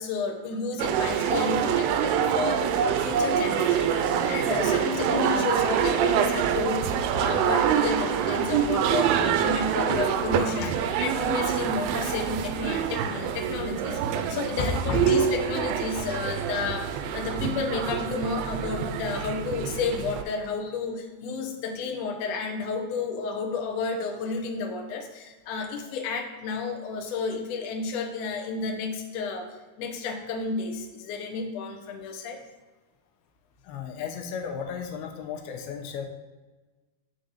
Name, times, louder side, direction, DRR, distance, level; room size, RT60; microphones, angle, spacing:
voice 1, 0.0-6.9 7.1-10.7 11.0-29.5 29.8-32.4, left 4 dB, 70° left, 2 dB, 2.1 m, -31 dB
sound 1, 0.8-20.2, right 8 dB, 80° right, 2.3 m, -26 dB
voice 2, 14.6-15.2 20.6-20.7 33.7-36.1, left 5 dB, 85° left, 4 dB, 2.6 m, -32 dB
6.9 x 3.9 x 6.5 m, 1.2 s
omnidirectional pair, 4.3 m